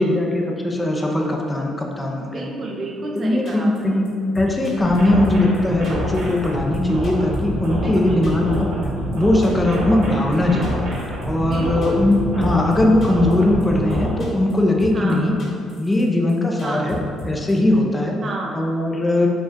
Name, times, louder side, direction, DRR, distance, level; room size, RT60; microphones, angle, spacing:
voice 1, 0.0-2.4 3.2-8.7 9.1-10.8 11.2-15.4 15.8-17.0 17.3-18.2 18.5-19.3, left 1 dB, 15° left, 1 dB, 0.5 m, -19 dB
voice 2, 2.3-4.0 7.8-8.7 11.4-11.9 14.9-15.4 16.6-16.9 18.2-18.6, right 2 dB, 45° right, -1 dB, 0.6 m, -31 dB
sound 1, 3.2-3.3 3.5-3.8 4.1-4.2 4.3-5.0 5.2-5.6 5.8-6.5 6.7-8.0 8.2-8.6 8.8-8.9 9.1-9.2 9.4-9.8 10.0-10.4 10.6-11.3 11.5-12.2 12.4-12.8 13.0-13.3 13.6-13.7 13.9-14.5 14.8-15.1 15.4-16.0 16.3-16.4 16.6-17.5, left 2 dB, 45° left, 1.2 m, -36 dB
sound 2, 4.8-14.1, right 1 dB, 75° right, 1.0 m, -26 dB
5.1 x 2.3 x 3.6 m, 2.3 s
cardioid pair, 90°, 0 cm